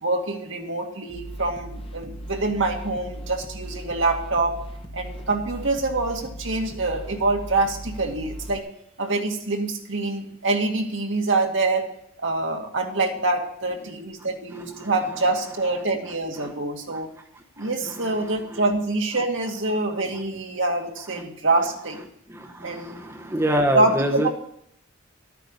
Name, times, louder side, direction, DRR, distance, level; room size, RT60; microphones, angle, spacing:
voice 1, 0.0-4.6 4.9-8.6 9.0-11.8 12.2-17.1 17.6-22.0 22.6-23.1 23.7-24.3, right 2 dB, 65° right, 2 dB, 2.0 m, -25 dB
sound 1, 1.1-8.6, right 1 dB, 25° left, 1.0 m, -38 dB
voice 2, 22.3-24.3, equal, 15° right, 1 dB, 0.9 m, -25 dB
12.5 x 9.1 x 5.5 m, 0.71 s
head